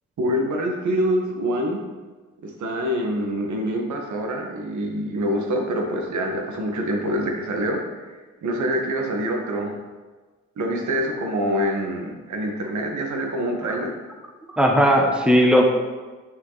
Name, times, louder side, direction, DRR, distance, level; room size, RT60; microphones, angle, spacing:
voice 1, 0.2-1.8 2.4-9.7 10.6-14.0, equal, 65° right, 1 dB, 1.8 m, -25 dB
voice 2, 14.6-15.7, equal, 5° right, 1 dB, 1.2 m, -17 dB
9.3 x 6.3 x 4.1 m, 1.3 s
cardioid pair, 85°, 31 cm